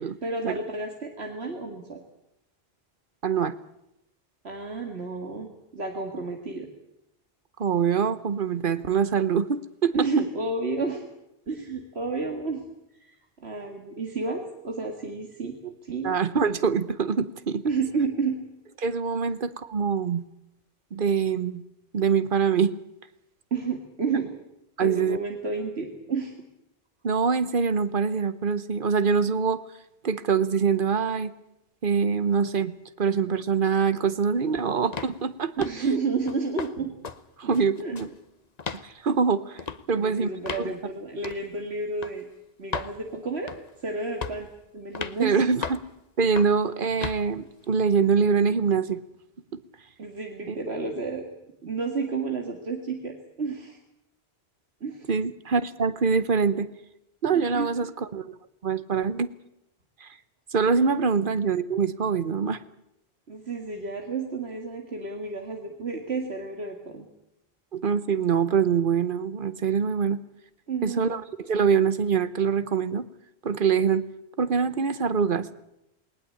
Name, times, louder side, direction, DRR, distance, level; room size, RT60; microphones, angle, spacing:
voice 1, 0.0-2.0 4.4-6.7 9.9-11.0 11.5-12.6 13.0-15.6 15.8-16.2 17.6-18.4 23.5-24.3 24.8-26.3 35.6-37.0 37.4-37.9 39.9-42.3 42.6-43.5 43.8-44.5 44.7-45.5 50.0-51.3 51.6-53.8 54.8-55.1 57.3-57.7 60.8-60.9 63.3-67.1 70.7-71.2, right 4 dB, 85° right, 3 dB, 2.2 m, -31 dB
voice 2, 3.2-3.5 7.6-9.9 15.6-15.7 16.0-17.6 18.8-20.2 20.9-21.6 21.9-22.7 24.8-25.2 27.0-29.6 30.0-31.3 31.8-35.5 37.4-38.1 38.8-39.6 39.9-40.3 40.6-40.7 45.2-45.8 46.2-49.0 50.5-50.6 55.1-56.7 57.2-58.2 58.6-59.3 60.0-60.1 60.5-62.6 67.7-70.2 70.8-73.0 73.4-74.0 74.4-75.5, right 6 dB, 55° right, 14 dB, 1.1 m, -24 dB
sound 1, 34.9-35.2 35.6-35.9 36.3-36.7 37.0-37.2 37.5-38.2 38.6-38.9 39.6-39.8 40.5-40.7 41.2-41.4 42.0-42.2 42.7-42.9 43.5-43.8 44.2-44.5 45.0-45.2 45.6-45.9 46.4-46.6 47.0-47.2, left 5 dB, 40° left, 1.0 m, -34 dB
19.5 x 19.5 x 8.5 m, 0.84 s
omnidirectional pair, 1.1 m